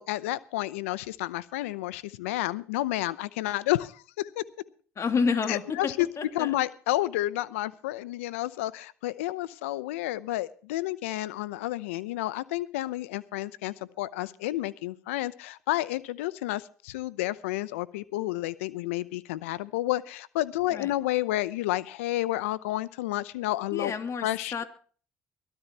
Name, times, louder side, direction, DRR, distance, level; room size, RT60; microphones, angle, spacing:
voice 1, 0.0-4.4 5.5-6.1 6.3-23.9 24.2-24.6, left 16 dB, 85° left, 18 dB, 0.7 m, -30 dB
voice 2, 5.0-6.6 20.7-20.9 23.7-24.6, left 5 dB, 45° left, 7 dB, 2.8 m, -29 dB
23.0 x 12.5 x 3.0 m, 0.42 s
hypercardioid pair, 60°, 7 cm